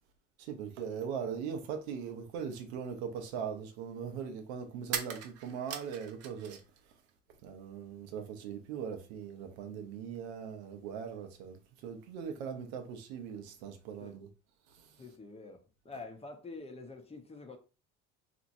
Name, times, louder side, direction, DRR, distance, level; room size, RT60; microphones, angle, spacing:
voice 1, 0.4-6.6 7.4-14.3 14.7-14.9, right 7 dB, 85° right, 0.7 m, -40 dB
sound 1, 2.6-2.7 4.8-6.8 7.1-8.0, right 8 dB, 50° right, 0.6 m, -41 dB
voice 2, 15.0-17.6, left 3 dB, 20° left, 0.7 m, -47 dB
2.9 x 2.5 x 2.6 m
supercardioid pair, 80°, 32 cm